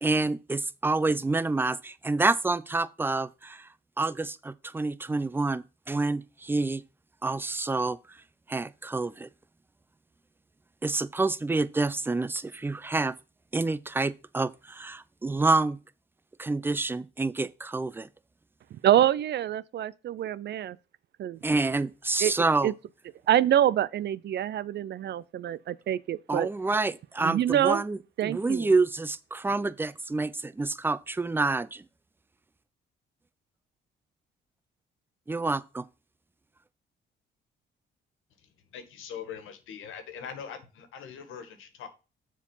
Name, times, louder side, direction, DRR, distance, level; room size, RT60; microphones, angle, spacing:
voice 1, 0.0-3.7 4.0-6.8 7.2-8.2 8.5-9.3 10.8-13.1 13.5-15.8 16.4-18.1 21.4-22.7 26.3-31.8 35.3-35.9, right 3 dB, 10° right, 0.5 m, -28 dB
voice 2, 18.8-20.8 21.2-21.4 22.2-22.3 22.6-22.7 23.3-26.5 27.2-27.8 28.2-28.7, right 11 dB, 60° right, 0.5 m, -26 dB
voice 3, 38.7-41.9, left 7 dB, 80° left, 1.7 m, -42 dB
7.2 x 4.6 x 5.4 m
cardioid pair, 90°, 20 cm